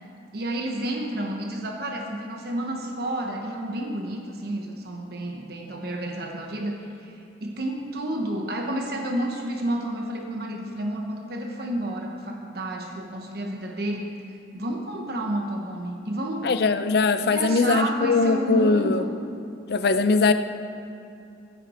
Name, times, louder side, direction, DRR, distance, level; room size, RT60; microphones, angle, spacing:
voice 1, 0.3-16.5 17.3-19.1, right 1 dB, 55° right, 1 dB, 1.1 m, -30 dB
voice 2, 16.4-19.0 19.7-20.3, left 3 dB, 55° left, 10 dB, 0.5 m, -21 dB
14.0 x 9.8 x 4.3 m, 2.6 s
head